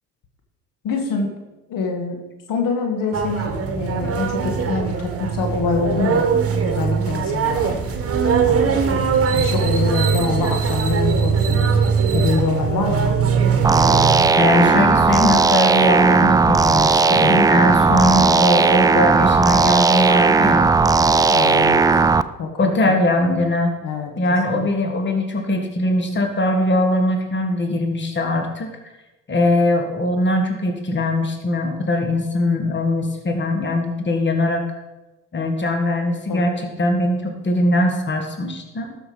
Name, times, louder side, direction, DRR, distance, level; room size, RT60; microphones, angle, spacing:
voice 1, 0.8-1.4 1.7-6.3 6.6-7.9 8.5-8.8 9.2-11.8 12.1-13.1 21.3-21.9 22.4-22.9 23.8-24.9 36.3-36.4, left 4 dB, 65° left, 3 dB, 1.9 m, -25 dB
sound 1, 3.1-14.3, right 6 dB, 40° right, 1.5 m, -20 dB
sound 2, 13.6-22.2, right 4 dB, 10° right, 0.3 m, -16 dB
voice 2, 14.4-20.7 22.6-23.7 24.2-28.7 29.3-34.6 35.3-39.0, left 1 dB, 30° left, 4 dB, 1.8 m, -20 dB
12.5 x 6.3 x 5.1 m, 1.0 s
supercardioid pair, 65°, 36 cm